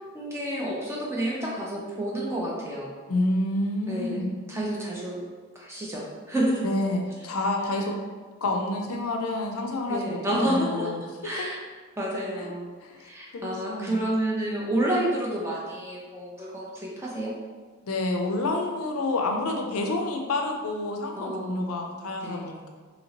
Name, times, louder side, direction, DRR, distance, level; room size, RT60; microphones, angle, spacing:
voice 1, 0.1-2.9 3.9-5.2 5.5-6.6 9.9-10.9 11.2-11.6 12.0-12.7 13.0-17.3 21.2-21.7 22.2-22.6, right 1 dB, 10° right, -4 dB, 0.4 m, -29 dB
voice 2, 3.1-4.3 6.6-8.0 8.4-11.0 12.4-12.5 12.8-13.1 13.3-14.0 17.8-22.7, left 2 dB, 80° left, 2 dB, 0.5 m, -28 dB
2.9 x 2.8 x 2.8 m, 1.4 s
head